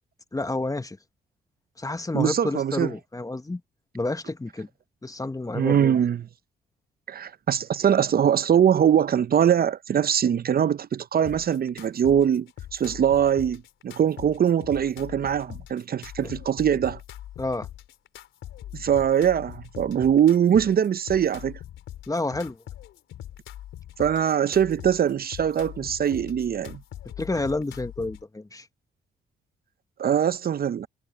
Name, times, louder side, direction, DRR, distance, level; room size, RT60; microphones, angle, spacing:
voice 1, 0.3-1.0 1.8-3.6 3.9-4.7 5.0-6.0 16.2-16.3 17.4-17.7 22.1-22.6 27.2-28.7, left 2 dB, 15° left, 1.3 m, -29 dB
voice 2, 2.1-2.9 5.5-6.2 7.1-17.0 18.7-21.6 24.0-26.8 30.0-30.9, right 9 dB, 50° right, 0.7 m, -22 dB
sound 1, 11.2-28.2, left 12 dB, 80° left, 3.8 m, -42 dB
supercardioid pair, 55°, 20 cm